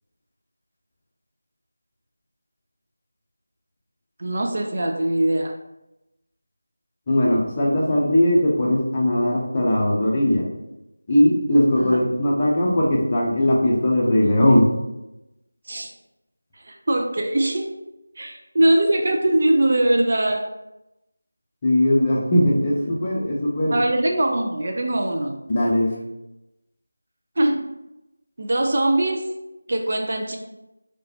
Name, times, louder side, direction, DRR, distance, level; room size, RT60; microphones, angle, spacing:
voice 1, 4.2-5.6 11.8-12.0 15.7-15.9 16.6-17.8 18.2-20.5 23.7-25.4 27.4-27.7 28.4-29.4 29.7-30.4, right 1 dB, 40° right, 2 dB, 0.4 m, -21 dB
voice 2, 7.1-10.4 11.1-14.6 21.6-23.8 25.5-25.9, left 1 dB, 20° left, -4 dB, 0.6 m, -19 dB
4.8 x 2.3 x 2.8 m, 0.93 s
figure-of-eight pair, 165°, 0 cm